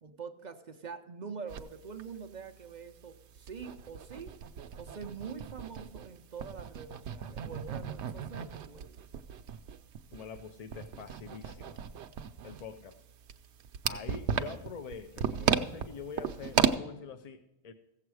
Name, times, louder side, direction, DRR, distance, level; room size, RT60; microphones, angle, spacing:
voice 1, 0.0-4.3 4.8-9.0, right 6 dB, 50° right, 7 dB, 0.6 m, -45 dB
sound 1, 1.5-1.6 2.0-2.1 2.4-2.5 3.0-6.1 6.4-16.7, right 8 dB, 85° right, 0.9 m, -34 dB
voice 2, 10.1-11.8 12.4-13.0 13.8-17.7, left 6 dB, 50° left, 8 dB, 0.5 m, -45 dB
15.5 x 7.6 x 4.7 m, 0.92 s
omnidirectional pair, 1.1 m